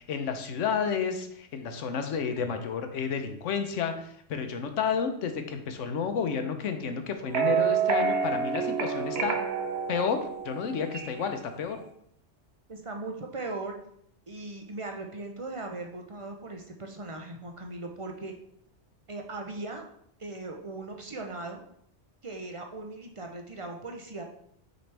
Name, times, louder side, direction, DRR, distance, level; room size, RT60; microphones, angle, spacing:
voice 1, 0.0-9.4 9.9-11.8, left 6 dB, 85° left, 7 dB, 1.1 m, -31 dB
sound 1, 7.3-11.3, right 6 dB, 65° right, 1.0 m, -28 dB
voice 2, 12.7-13.7 14.3-18.3 19.1-19.8 20.2-21.6 22.2-24.2, right 2 dB, 35° right, 3 dB, 0.5 m, -38 dB
6.5 x 4.4 x 3.3 m, 0.70 s
omnidirectional pair, 1.2 m